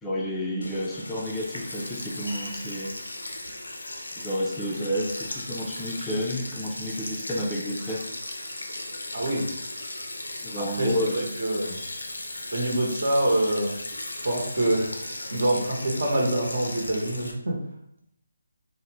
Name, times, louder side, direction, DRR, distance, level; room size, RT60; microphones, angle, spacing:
voice 1, 0.0-2.9 4.2-8.0 10.4-11.3, equal, 10° left, -5 dB, 0.4 m, -30 dB
Sink (filling or washing), 0.6-17.3, left 2 dB, 80° left, 0.5 m, -37 dB
voice 2, 9.1-9.4 10.6-11.7 12.5-13.8 14.2-14.9 15.3-17.5, right 1 dB, 60° right, -1 dB, 0.9 m, -25 dB
2.5 x 2.1 x 3.1 m, 0.73 s
figure-of-eight pair, 150°, 0 cm